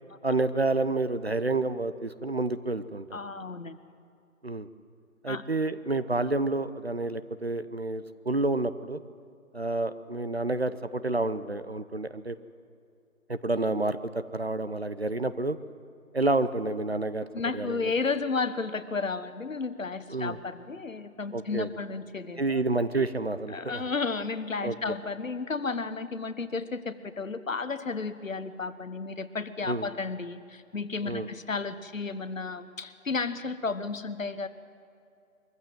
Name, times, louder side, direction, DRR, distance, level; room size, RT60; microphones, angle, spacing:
voice 1, 0.2-3.2 4.4-4.7 5.2-9.0 9.5-12.4 13.3-15.6 16.1-17.3 17.5-17.9 20.1-20.4 21.3-21.7 22.4-23.8 24.6-24.8 29.7-29.9 31.1-31.3, right 2 dB, 45° right, 13 dB, 0.7 m, -29 dB
voice 2, 3.1-3.8 5.3-5.4 17.3-22.6 23.5-34.5, left 4 dB, 65° left, 12 dB, 1.2 m, -33 dB
22.5 x 15.0 x 7.7 m, 2.5 s
figure-of-eight pair, 175°, 42 cm